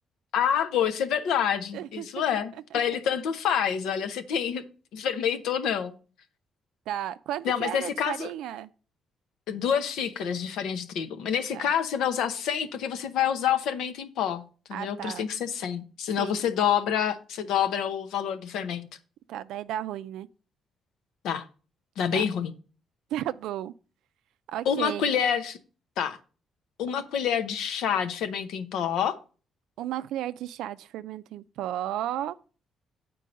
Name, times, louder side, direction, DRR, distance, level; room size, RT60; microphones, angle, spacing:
voice 1, 0.3-4.6 4.9-5.9 7.4-8.3 9.5-14.4 14.7-18.9 21.2-21.5 22.0-22.5 24.7-25.6 26.0-26.2 26.8-29.2, left 8 dB, 85° left, 0.8 m, -27 dB
voice 2, 1.7-2.1 2.3-2.4 2.7-2.8 6.9-8.7 11.5-11.7 14.7-15.3 16.2-16.4 19.3-20.3 22.1-22.2 23.1-23.7 24.5-25.1 29.8-32.4, right 12 dB, 90° right, 0.3 m, -34 dB
7.6 x 4.5 x 5.2 m
cardioid pair, 90°, 0 cm